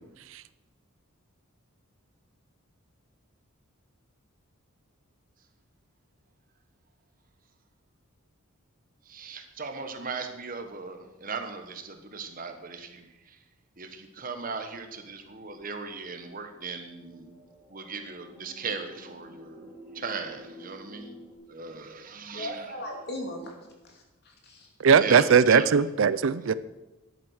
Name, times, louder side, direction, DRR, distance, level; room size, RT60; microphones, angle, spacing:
voice 1, 9.1-13.4 13.8-17.4 17.7-19.7 19.9-21.2 21.5-22.7 25.0-25.7, right 4 dB, 40° right, 6 dB, 1.2 m, -38 dB
sound 1, 16.5-21.4, equal, 10° right, 3.9 m, -50 dB
voice 2, 22.3-23.5 23.8-24.7, left 1 dB, 50° left, 1 dB, 2.8 m, -38 dB
voice 3, 24.8-26.5, right 6 dB, 65° right, 16 dB, 0.4 m, -20 dB
11.0 x 9.3 x 6.4 m, 1.0 s
head